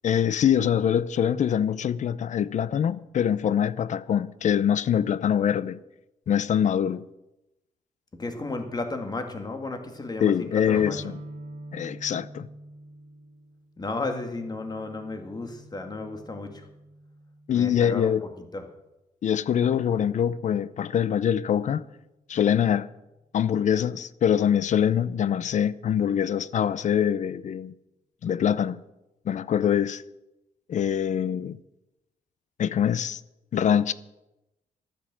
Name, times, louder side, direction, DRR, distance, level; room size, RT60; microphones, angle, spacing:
voice 1, 0.0-5.8 6.3-7.1 10.2-11.2 11.7-12.5 17.5-18.2 19.2-21.8 22.3-22.9 23.3-27.7 28.2-28.8 29.3-30.0 30.7-31.6 32.6-33.2 33.5-33.9, left 9 dB, 55° left, 0.6 m, -24 dB
voice 2, 8.2-11.0 13.8-16.7 17.5-18.6, left 2 dB, 30° left, 2.1 m, -33 dB
sound 1, 10.7-18.3, right 2 dB, 70° right, 2.2 m, -45 dB
12.0 x 10.0 x 7.6 m
cardioid pair, 100°, 14 cm